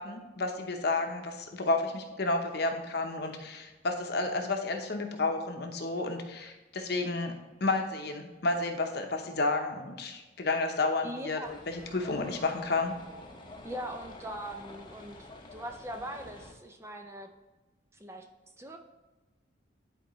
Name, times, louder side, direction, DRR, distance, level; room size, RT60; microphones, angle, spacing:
voice 1, 0.0-7.3 7.6-11.4 11.7-12.9, left 3 dB, 60° left, 4 dB, 0.8 m, -31 dB
voice 2, 11.0-11.5 13.6-17.3 17.9-18.3 18.6-18.8, right 1 dB, 15° right, 5 dB, 0.5 m, -41 dB
sound 1, 11.4-16.5, left 2 dB, 25° left, 0.8 m, -49 dB
10.5 x 4.5 x 3.1 m, 1.2 s
head